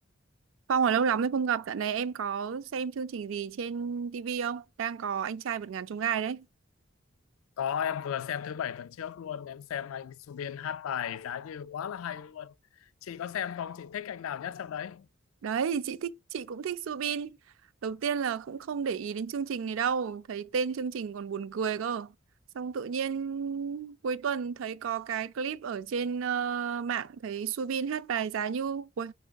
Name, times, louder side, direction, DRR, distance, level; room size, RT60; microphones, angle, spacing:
voice 1, 0.7-6.5 15.4-17.4 17.8-22.1 22.5-29.1, right 6 dB, 70° right, 0.4 m, -31 dB
voice 2, 7.6-15.1, left 8 dB, 80° left, 0.3 m, -35 dB
4.8 x 4.3 x 2.3 m
head